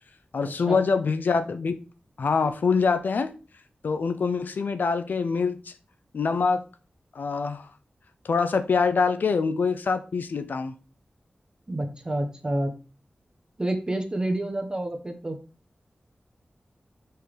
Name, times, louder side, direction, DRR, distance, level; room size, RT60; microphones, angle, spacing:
voice 1, 0.3-1.8 2.2-3.3 3.8-5.7 6.1-6.6 7.1-7.7 8.2-10.7, left 5 dB, 85° left, 0.6 m, -25 dB
voice 2, 11.7-12.7 13.6-15.4, right 1 dB, 25° right, 1.1 m, -28 dB
5.5 x 4.0 x 4.9 m
wide cardioid pair, 110°, 3 cm